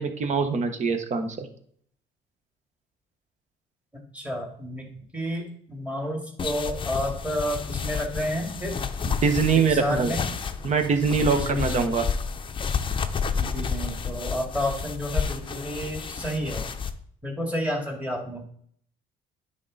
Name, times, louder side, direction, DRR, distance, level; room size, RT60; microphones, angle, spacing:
voice 1, 0.0-1.4 9.0-10.1 10.6-12.0, right 5 dB, 45° right, 7 dB, 1.1 m, -23 dB
voice 2, 4.1-8.7 9.7-10.3 11.2-11.9 13.4-16.6 17.2-18.5, equal, 10° right, 1 dB, 2.2 m, -30 dB
sound 1, 6.4-16.9, left 6 dB, 30° left, 0.6 m, -30 dB
9.8 x 3.8 x 4.0 m, 0.62 s
cardioid pair, 110°, 17 cm